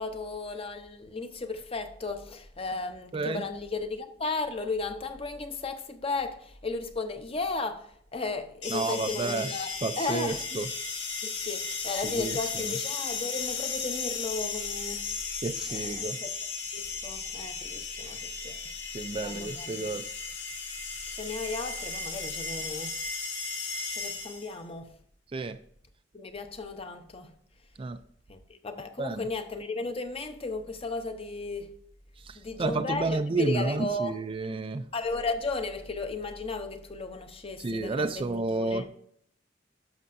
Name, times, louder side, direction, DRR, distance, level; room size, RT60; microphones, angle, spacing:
voice 1, 0.0-10.6 11.2-15.1 15.7-16.3 16.7-18.6 19.1-19.9 21.1-23.0 23.9-24.9 26.1-27.3 28.3-31.8 32.3-34.2 34.9-38.2 38.5-38.9, left 3 dB, 35° left, 0.8 m, -35 dB
voice 2, 3.1-3.4 8.7-9.5 9.8-10.7 12.0-12.7 15.4-16.2 18.9-20.0 25.3-25.6 27.8-28.0 29.0-29.3 32.2-34.9 37.6-38.9, right 3 dB, 30° right, 0.4 m, -31 dB
sound 1, 8.6-24.6, left 5 dB, 90° left, 2.3 m, -35 dB
11.0 x 6.4 x 2.6 m
head